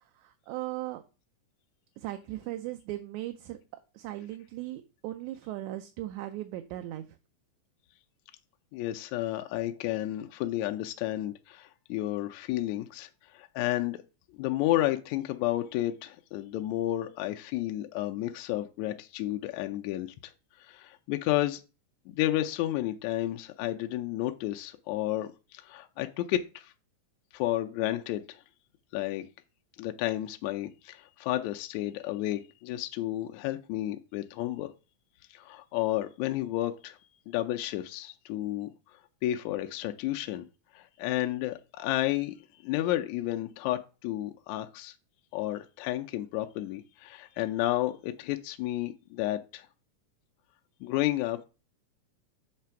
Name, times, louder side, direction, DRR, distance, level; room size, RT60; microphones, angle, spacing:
voice 1, 0.2-1.0 2.0-3.6 3.9-7.0, right 15 dB, 80° right, 1.9 m, -38 dB
voice 2, 8.7-14.0 14.4-20.3 20.6-21.6 22.2-26.7 27.3-28.4 28.9-29.3 29.8-34.7 35.3-37.0 37.3-40.4 40.7-44.9 45.3-49.7 50.8-51.4, left 14 dB, 80° left, 1.8 m, -31 dB
7.5 x 3.3 x 5.7 m
omnidirectional pair, 3.5 m